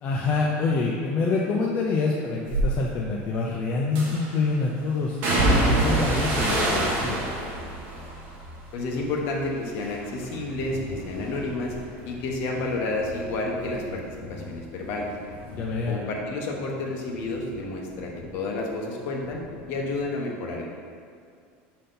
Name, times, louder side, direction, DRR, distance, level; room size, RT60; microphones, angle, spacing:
voice 1, 0.0-7.2 15.5-16.0, left 4 dB, 30° left, -2 dB, 0.5 m, -26 dB
sound 1, 2.5-2.7 4.0-4.4 5.2-9.5 9.8-10.4 10.8-14.1 14.3-15.5 15.7-15.9, right 2 dB, 50° right, 1.2 m, -27 dB
voice 2, 8.7-11.7 12.0-15.1 15.9-19.4 19.7-20.7, left 2 dB, 50° left, -1 dB, 1.0 m, -30 dB
Thunder, 10.3-20.0, left 1 dB, 70° left, 1.2 m, -44 dB
6.5 x 4.1 x 3.9 m, 2.3 s
cardioid pair, 165°, 5 cm